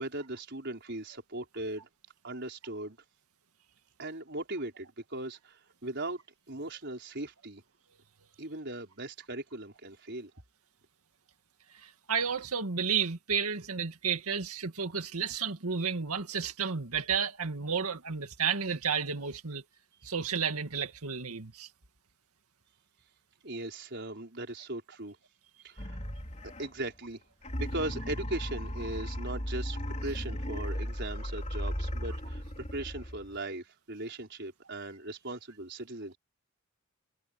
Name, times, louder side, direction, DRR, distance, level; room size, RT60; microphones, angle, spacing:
voice 1, 0.0-1.9 2.2-3.0 4.0-6.2 6.5-7.6 8.4-10.3 23.4-25.2 25.6-26.0 26.6-27.2 27.6-36.2, right 2 dB, 50° right, 5.3 m, -39 dB
voice 2, 11.8-19.6 20.0-21.7, right 6 dB, 90° right, 2.1 m, -32 dB
sound 1, 25.8-26.9 27.4-33.4, equal, 30° left, 3.6 m, -36 dB
head